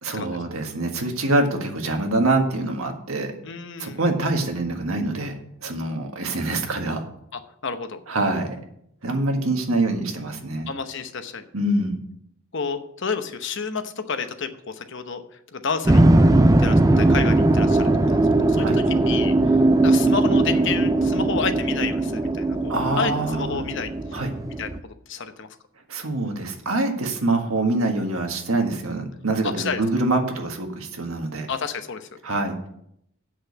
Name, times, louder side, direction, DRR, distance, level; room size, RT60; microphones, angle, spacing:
voice 1, 0.0-3.3 3.8-5.4 5.6-7.1 8.1-8.6 9.0-10.7 11.5-12.0 18.6-18.8 22.7-23.6 24.1-24.3 25.9-31.5 32.2-32.7, right 2 dB, 75° right, 4 dB, 1.7 m, -25 dB
voice 2, 3.4-4.0 7.3-8.0 10.7-11.4 12.5-15.2 15.5-16.0 16.6-19.3 19.8-24.2 24.6-25.5 29.4-29.8 31.5-32.1, left 5 dB, 55° left, 9 dB, 0.9 m, -30 dB
sound 1, 15.8-24.8, right 2 dB, 15° right, 0.4 m, -19 dB
8.1 x 6.3 x 8.0 m, 0.73 s
head